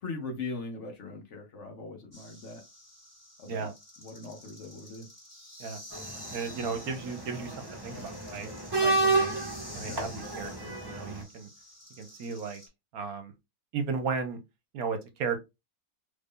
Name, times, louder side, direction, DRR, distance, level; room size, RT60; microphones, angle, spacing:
voice 1, 0.0-2.6 3.4-3.7 4.0-5.1 9.8-10.0, left 3 dB, 55° left, 1.1 m, -40 dB
sound 1, 2.1-12.7, left 1 dB, 15° left, 1.4 m, -49 dB
sound 2, 5.9-11.2, right 2 dB, 20° right, 0.7 m, -31 dB
voice 2, 6.3-7.6 7.8-9.3 9.7-11.5 12.0-12.6 12.9-13.3 13.7-14.4 14.7-15.4, right 5 dB, 70° right, 1.1 m, -35 dB
3.1 x 2.6 x 3.6 m
omnidirectional pair, 1.7 m